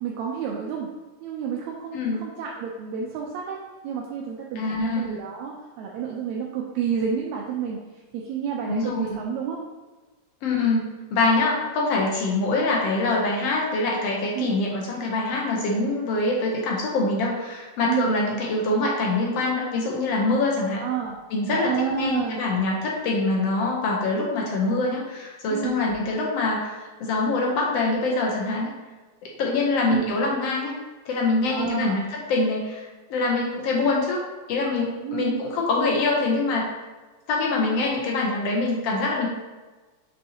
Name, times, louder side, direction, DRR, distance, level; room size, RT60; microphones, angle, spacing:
voice 1, 0.0-0.9 1.2-7.8 8.1-9.6 14.3-14.6 17.9-18.2 20.8-21.2 21.5-22.4 25.5-25.7 29.8-30.2 31.5-32.0 35.0-35.4, right 7 dB, 80° right, -1 dB, 1.9 m, -30 dB
voice 2, 1.9-2.3 4.6-5.2 8.7-9.2 10.4-20.8 21.3-28.7 29.2-30.8 31.1-36.7 37.3-39.3, left 3 dB, 70° left, -1 dB, 1.7 m, -24 dB
6.6 x 5.6 x 2.8 m, 1.3 s
omnidirectional pair, 3.4 m